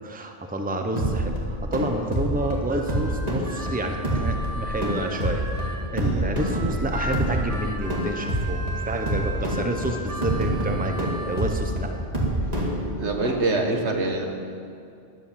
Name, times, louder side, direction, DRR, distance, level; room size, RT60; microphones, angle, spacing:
voice 1, 0.0-11.9 12.4-12.5, right 1 dB, 10° right, 4 dB, 0.9 m, -29 dB
sound 1, 1.0-13.3, right 1 dB, 35° right, 2.4 m, -27 dB
Harmonica, 2.3-5.8 6.4-11.5, equal, 50° right, 2.1 m, -37 dB
voice 2, 13.0-14.3, right 2 dB, 80° right, 3 dB, 1.7 m, -25 dB
13.0 x 11.0 x 7.5 m, 2.5 s
omnidirectional pair, 1.1 m